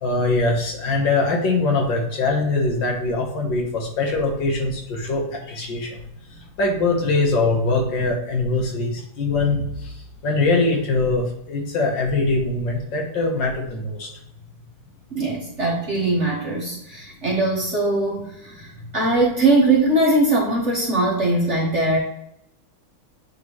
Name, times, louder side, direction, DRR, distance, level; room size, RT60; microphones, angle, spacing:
voice 1, 0.0-6.0 6.3-14.1, left 3 dB, 65° left, 1 dB, 1.8 m, -22 dB
voice 2, 15.1-22.0, right 2 dB, 40° right, -3 dB, 1.5 m, -21 dB
9.1 x 3.7 x 3.0 m, 0.78 s
omnidirectional pair, 2.3 m